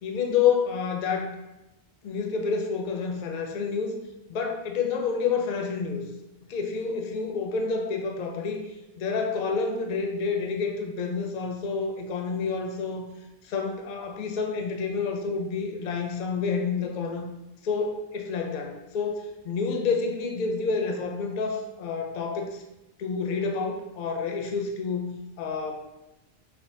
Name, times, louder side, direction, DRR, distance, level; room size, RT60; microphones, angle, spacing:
voice 1, 0.0-1.3 2.0-4.0 4.3-6.0 6.5-8.6 9.0-13.1 13.4-17.3 17.6-22.5 23.0-25.1 25.4-25.7, left 5 dB, 55° left, 3 dB, 0.5 m, -28 dB
5.7 x 2.1 x 2.6 m, 0.95 s
omnidirectional pair, 1.3 m